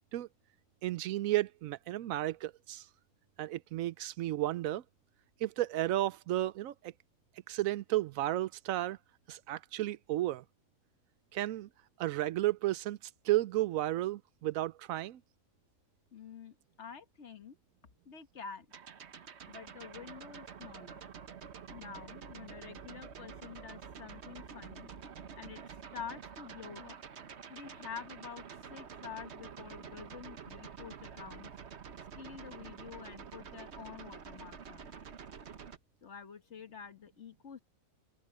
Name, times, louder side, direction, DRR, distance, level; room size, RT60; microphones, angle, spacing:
voice 1, 0.8-2.9 3.4-4.8 5.4-6.9 7.5-9.0 9.3-10.4 11.3-11.7 12.0-13.0 13.2-15.2, right 15 dB, 90° right, 1.0 m, -33 dB
voice 2, 16.1-17.6 18.0-18.7 19.5-21.0 21.7-24.9 25.4-27.0 27.5-31.5 32.2-35.0 36.0-37.6, left 7 dB, 60° left, 1.6 m, -48 dB
sound 1, 18.7-35.8, right 6 dB, 55° right, 1.3 m, -48 dB
open air
omnidirectional pair, 1.4 m